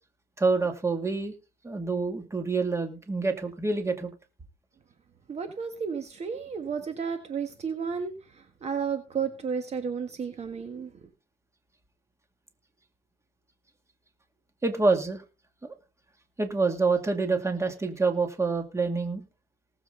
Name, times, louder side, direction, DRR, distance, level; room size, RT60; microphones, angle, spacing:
voice 1, 0.4-1.3 1.6-4.1 14.6-15.2 15.6-15.7 16.4-19.2, right 3 dB, 15° right, 6 dB, 2.4 m, -27 dB
voice 2, 5.3-8.1 8.6-10.9, right 6 dB, 40° right, 7 dB, 1.6 m, -32 dB
19.0 x 7.5 x 3.8 m, 0.32 s
cardioid pair, 110°, 17 cm